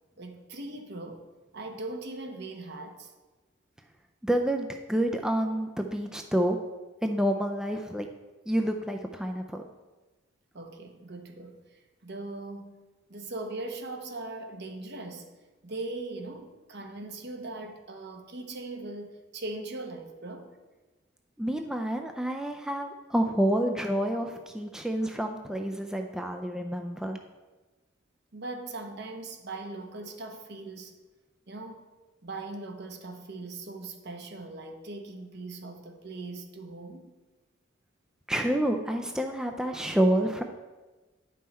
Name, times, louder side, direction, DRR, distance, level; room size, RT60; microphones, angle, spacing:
voice 1, 0.2-1.2 1.5-3.1 10.5-12.8 13.1-15.3 15.6-20.5 28.3-30.9 31.5-31.9 32.2-37.1, right 2 dB, 60° right, 1.0 m, -40 dB
voice 2, 4.2-6.6 7.0-8.1 8.5-9.6 21.4-27.2 38.3-40.4, right 1 dB, 5° right, 0.4 m, -28 dB
9.8 x 5.6 x 4.2 m
head